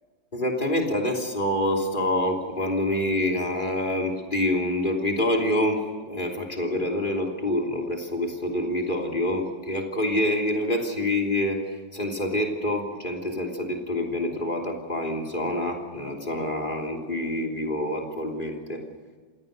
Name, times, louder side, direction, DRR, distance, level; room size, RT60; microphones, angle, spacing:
voice 1, 0.3-18.8, left 1 dB, 25° left, 4 dB, 3.3 m, -26 dB
27.5 x 17.5 x 6.7 m, 1.5 s
omnidirectional pair, 1.9 m